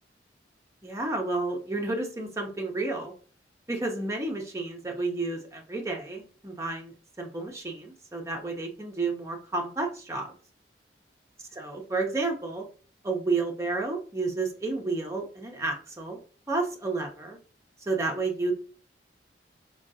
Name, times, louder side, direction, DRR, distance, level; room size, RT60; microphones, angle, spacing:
voice 1, 0.8-3.1 3.7-10.3 11.6-12.6 13.0-16.2 16.5-17.4 17.9-18.5, right 3 dB, 15° right, 1 dB, 0.6 m, -31 dB
3.8 x 2.3 x 2.6 m, 0.39 s
head